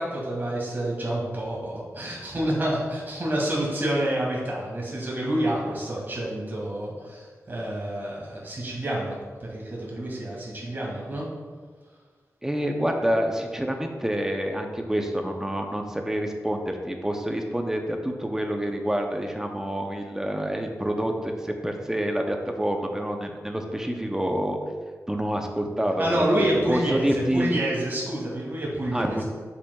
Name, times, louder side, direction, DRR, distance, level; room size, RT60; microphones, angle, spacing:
voice 1, 0.0-9.2 9.4-11.2 26.0-29.2, right 1 dB, 35° right, -5 dB, 2.0 m, -28 dB
voice 2, 12.4-24.6 25.1-27.6 28.9-29.2, equal, 10° right, 3 dB, 0.6 m, -27 dB
8.0 x 6.9 x 2.3 m, 1.5 s
wide cardioid pair, 135°, 6 cm